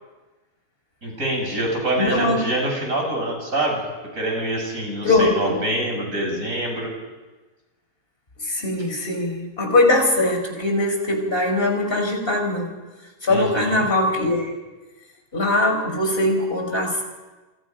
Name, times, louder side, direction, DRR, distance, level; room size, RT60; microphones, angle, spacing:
voice 1, 1.0-3.8 4.2-6.9 13.3-13.8, right 1 dB, 55° right, 0 dB, 6.9 m, -25 dB
voice 2, 2.0-2.5 5.0-5.6 8.4-12.7 13.2-14.5 15.3-17.0, left 2 dB, 35° left, 2 dB, 5.1 m, -21 dB
28.5 x 22.5 x 5.3 m, 1.2 s
omnidirectional pair, 1.6 m